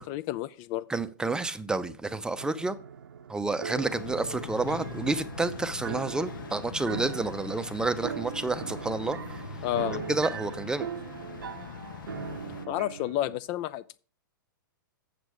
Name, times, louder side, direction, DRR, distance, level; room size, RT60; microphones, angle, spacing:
voice 1, 0.1-0.8 9.6-10.0 12.7-14.0, left 13 dB, 40° left, 0.4 m, -31 dB
voice 2, 0.9-2.8 3.3-9.6 9.9-10.9, right 3 dB, 5° right, 0.6 m, -30 dB
sound 1, 2.4-13.4, right 7 dB, 80° right, 0.7 m, -40 dB
sound 2, 3.7-12.7, left 5 dB, 70° left, 1.1 m, -42 dB
8.1 x 6.7 x 4.8 m
hypercardioid pair, 115°, 11 cm